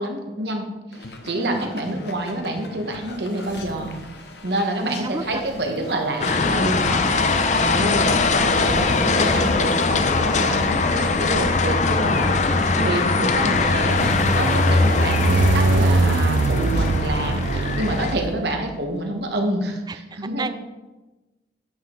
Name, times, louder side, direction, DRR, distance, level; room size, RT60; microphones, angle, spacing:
voice 1, 0.0-4.0 4.4-7.3 7.6-12.2 12.8-20.5, right 1 dB, 65° right, 3 dB, 1.3 m, -27 dB
sound 1, 0.9-17.1, left 2 dB, 65° left, 0.8 m, -41 dB
voice 2, 1.4-1.7 4.5-5.5 7.0-7.8 10.8-11.1 11.9-12.3 12.7-13.0 19.9-20.5, right 2 dB, 20° right, 11 dB, 0.4 m, -32 dB
sound 2, 3.5-4.2 5.2-18.9, right 3 dB, 90° right, 0.4 m, -26 dB
sound 3, 6.2-18.1, left 3 dB, 40° left, 0.5 m, -21 dB
9.4 x 6.6 x 3.9 m, 1.1 s
head